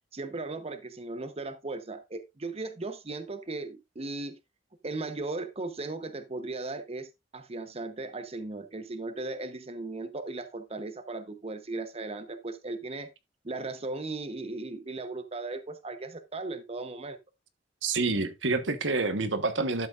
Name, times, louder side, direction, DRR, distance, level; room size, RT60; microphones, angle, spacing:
voice 1, 0.1-4.4 4.8-13.1 13.4-17.2, right 2 dB, 35° right, 0.9 m, -37 dB
voice 2, 17.8-19.9, right 3 dB, 85° right, 1.3 m, -28 dB
12.0 x 7.7 x 2.5 m
head